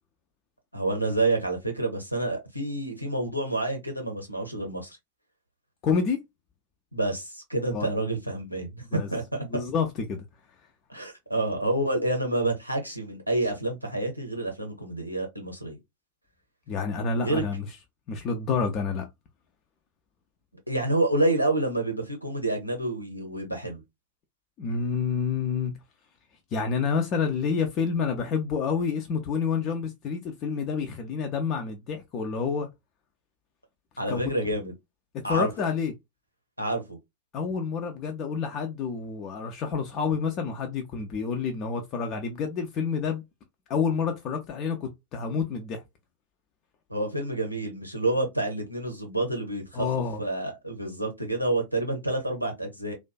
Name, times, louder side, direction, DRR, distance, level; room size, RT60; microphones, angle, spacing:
voice 1, 0.7-5.0 6.9-9.4 10.9-15.8 17.2-17.4 20.7-23.8 34.0-34.7 35.2-35.5 36.6-37.0 46.9-49.9 50.2-52.9, right 2 dB, 90° right, 0.7 m, -28 dB
voice 2, 5.8-6.2 7.7-7.9 8.9-9.1 9.4-10.2 16.7-17.7 18.1-19.1 24.6-25.7 26.5-32.7 34.1-34.2 35.3-35.9 37.3-43.2 43.7-45.8 49.7-50.2, left 5 dB, 35° left, 0.4 m, -28 dB
2.5 x 2.2 x 2.3 m
figure-of-eight pair, 90°, 0 cm